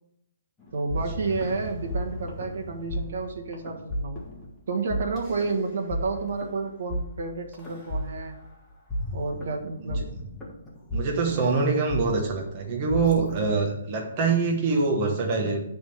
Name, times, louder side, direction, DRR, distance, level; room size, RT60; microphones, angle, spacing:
sound 1, 0.6-13.6, equal, 5° left, 1.4 m, -34 dB
voice 1, 0.7-4.2 4.7-8.3 9.1-10.1, right 4 dB, 55° right, 3 dB, 1.5 m, -30 dB
voice 2, 10.9-15.6, right 4 dB, 20° right, 0 dB, 1.0 m, -24 dB
9.8 x 3.6 x 6.9 m, 0.78 s
hypercardioid pair, 175°, 0 cm